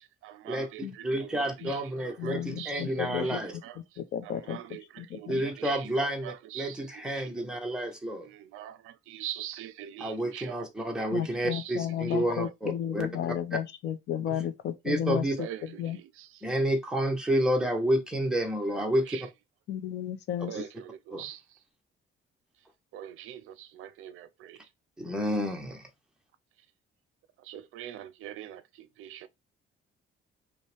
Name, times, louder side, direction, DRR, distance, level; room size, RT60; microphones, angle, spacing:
voice 1, 0.2-3.8 4.2-7.6 8.2-11.1 11.5-11.7 12.0-12.1 15.4-16.3 18.9-19.3 20.5-21.4 22.9-24.6 27.4-29.3, right 12 dB, 80° right, 0.5 m, -43 dB
voice 2, 1.0-3.5 5.3-8.3 10.0-13.1 13.5-13.6 14.8-15.4 16.4-19.2 21.1-21.3 25.0-25.8, right 1 dB, 5° right, 0.8 m, -29 dB
voice 3, 2.2-3.4 4.0-4.6 5.0-5.4 11.1-15.2 15.8-16.0 19.7-20.6, left 10 dB, 55° left, 0.5 m, -33 dB
5.3 x 2.2 x 3.3 m
cardioid pair, 160°, 21 cm